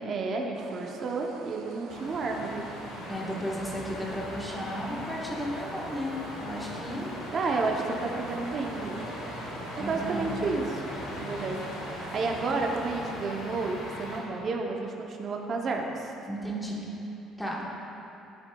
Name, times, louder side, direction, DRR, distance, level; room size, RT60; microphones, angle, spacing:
voice 1, 0.0-2.7 3.0-3.1 7.3-9.0 9.8-10.9 11.2-16.1, right 3 dB, 40° right, 1 dB, 0.7 m, -31 dB
sound 1, 0.5-14.0, right 4 dB, 75° right, 0.6 m, -44 dB
sound 2, 1.9-14.2, left 1 dB, 80° left, 1.6 m, -40 dB
voice 2, 3.1-7.1 9.8-10.3 16.2-16.8 17.4-17.6, equal, 5° left, -4 dB, 1.1 m, -34 dB
11.0 x 8.0 x 2.3 m, 3.0 s
cardioid pair, 155°, 0 cm